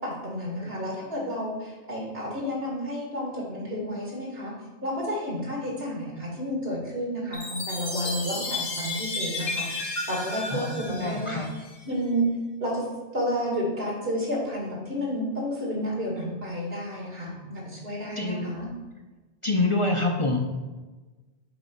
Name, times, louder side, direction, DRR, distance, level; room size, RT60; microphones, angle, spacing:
voice 1, 0.0-4.5 4.8-11.5 11.9-12.3 12.6-12.8 13.1-18.7, equal, 70° right, -3 dB, 2.6 m, -31 dB
Chime, 7.3-11.9, left 2 dB, 75° left, 1.8 m, -33 dB
voice 2, 10.5-11.5 18.2-18.5 19.4-20.4, left 2 dB, 35° left, 2 dB, 0.7 m, -26 dB
7.8 x 4.1 x 5.4 m, 1.2 s
omnidirectional pair, 1.0 m